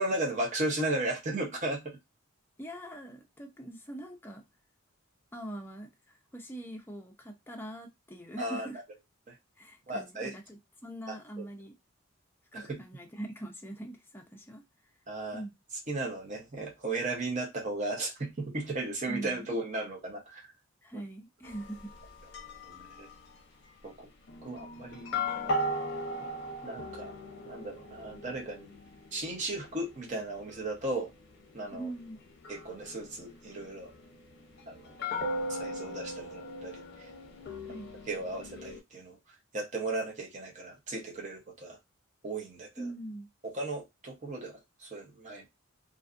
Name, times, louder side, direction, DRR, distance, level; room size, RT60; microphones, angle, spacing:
voice 1, 0.0-2.0 8.4-8.7 9.3-9.4 9.9-10.3 11.1-11.5 12.5-12.8 15.1-15.4 15.9-20.4 20.9-21.0 22.6-23.1 23.8-24.1 24.4-25.1 25.4-25.6 26.2-26.3 26.6-27.1 27.4-28.8 29.1-31.1 31.5-31.9 32.5-33.9 34.7-35.0 35.5-36.8 37.7-37.8 38.1-39.2 39.5-41.8 42.2-42.9 43.5-45.5, right 2 dB, 35° right, 0.7 m, -35 dB
voice 2, 2.6-4.4 5.3-8.8 9.6-11.8 12.5-14.6 15.3-15.5 19.1-19.6 20.8-22.0 31.7-32.2 37.7-37.9 42.8-43.3, right 1 dB, 10° left, 0.5 m, -42 dB
sound 1, 21.4-23.3 24.3-38.8, left 1 dB, 55° left, 0.6 m, -39 dB
2.5 x 2.4 x 2.4 m
head